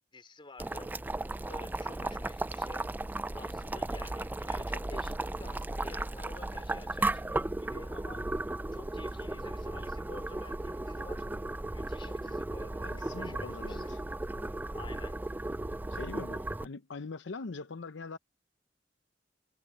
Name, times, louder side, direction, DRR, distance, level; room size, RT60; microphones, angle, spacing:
voice 1, 0.1-0.9 1.4-2.9 3.3-8.3 8.7-11.3 11.6-13.9 14.7-15.2, left 2 dB, 30° left, 3.4 m, -50 dB
Boiling, 0.6-16.7, right 2 dB, 10° right, 0.3 m, -35 dB
voice 2, 12.8-14.0 15.9-18.2, left 4 dB, 85° left, 0.7 m, -42 dB
head